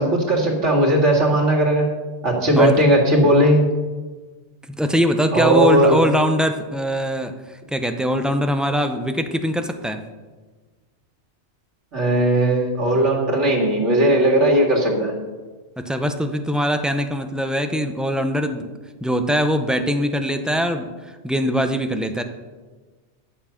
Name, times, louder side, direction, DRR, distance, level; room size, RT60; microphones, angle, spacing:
voice 1, 0.0-1.9 2.2-3.6 5.3-6.0 11.9-15.1, right 1 dB, 80° right, -2 dB, 2.4 m, -17 dB
voice 2, 4.8-10.0 15.8-18.7 19.0-20.9 21.2-22.2, equal, ahead, 7 dB, 0.3 m, -22 dB
11.0 x 6.9 x 5.7 m, 1.3 s
omnidirectional pair, 1.2 m